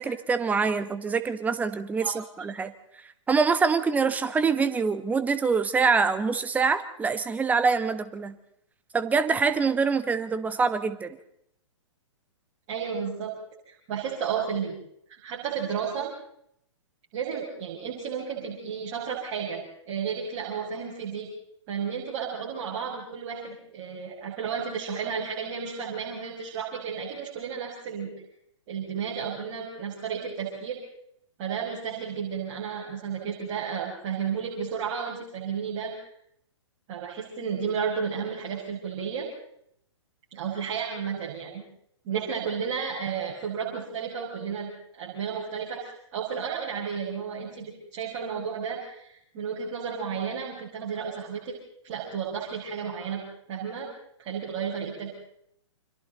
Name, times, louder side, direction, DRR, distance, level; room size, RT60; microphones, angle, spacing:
voice 1, 0.0-8.4 8.9-11.2, right 5 dB, 10° right, 11 dB, 1.3 m, -25 dB
voice 2, 12.7-13.3 13.7-14.8 15.1-16.1 17.1-21.3 21.7-28.1 28.7-30.8 31.4-36.0 36.9-39.3 40.3-41.6 42.0-51.5 51.8-53.2 53.5-53.9 54.2-55.1, right 7 dB, 35° right, -4 dB, 5.8 m, -32 dB
29.5 x 26.0 x 4.0 m, 0.72 s
figure-of-eight pair, 120°, 16 cm